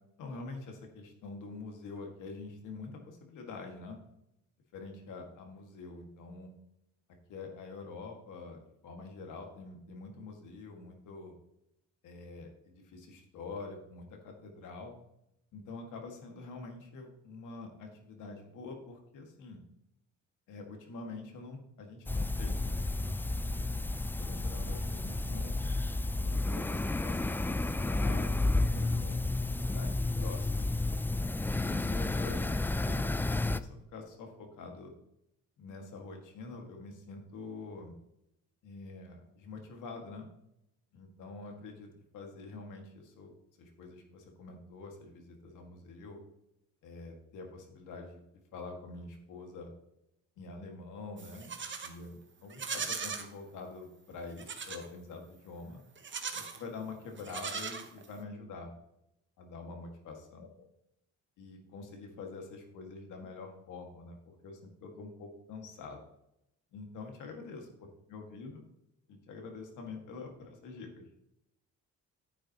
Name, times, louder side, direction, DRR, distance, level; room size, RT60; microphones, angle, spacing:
voice 1, 0.2-4.0 4.7-6.5 7.3-11.4 12.0-14.9 15.5-19.6 20.5-23.2 23.8-23.9 24.2-25.6 26.2-30.7 31.6-34.9 35.6-38.0 38.6-40.3 40.9-43.3 43.6-46.2 46.8-48.2 48.5-49.7 50.4-51.5 51.8-55.8 56.3-58.7 59.4-60.7 61.4-66.0 66.7-68.6 69.1-71.1, left 3 dB, 85° left, 3 dB, 2.0 m, -46 dB
sound 1, 22.1-33.6, left 2 dB, 5° left, 0.3 m, -31 dB
Livestock farm animals working animals, 51.2-52.0 52.5-53.3 54.4-54.9 56.0-56.6 57.2-58.2, right 5 dB, 40° right, 1.1 m, -39 dB
10.0 x 8.9 x 3.0 m, 0.82 s
cardioid pair, 90°, 30 cm